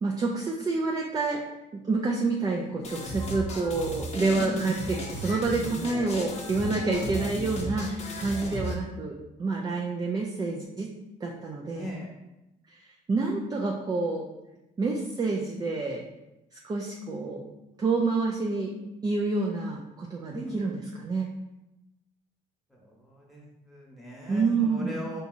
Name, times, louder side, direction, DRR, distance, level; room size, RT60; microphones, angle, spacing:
voice 1, 0.0-1.4 1.7-10.9 11.2-11.9 12.7-14.3 14.8-16.0 16.6-17.5 17.8-18.7 19.0-21.3 24.3-25.0, right 3 dB, 25° right, -1 dB, 0.4 m, -28 dB
sound 1, 2.8-8.8, equal, 40° left, 0.7 m, -35 dB
voice 2, 4.4-4.7 8.4-8.6 11.8-12.1 20.3-20.6 22.8-25.2, equal, ahead, -4 dB, 1.2 m, -38 dB
4.8 x 2.8 x 2.6 m, 0.94 s
cardioid pair, 110°, 17 cm